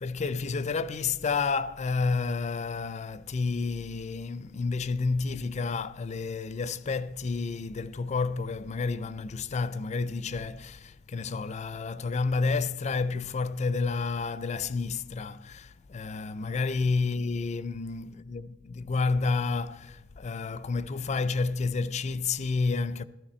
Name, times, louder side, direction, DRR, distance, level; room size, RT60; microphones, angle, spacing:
voice 1, 0.0-23.0, left 4 dB, 35° left, 0.4 m, -30 dB
14.5 x 13.5 x 4.2 m
head